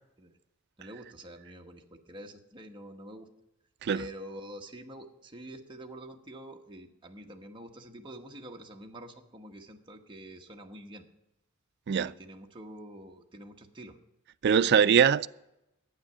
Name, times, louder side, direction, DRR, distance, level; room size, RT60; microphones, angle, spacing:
voice 1, 0.8-3.3 3.9-11.0 12.0-14.0 14.6-14.9, right 1 dB, 25° right, 1.2 m, -46 dB
voice 2, 14.4-15.3, right 7 dB, 50° right, 0.4 m, -22 dB
11.5 x 8.9 x 6.7 m
head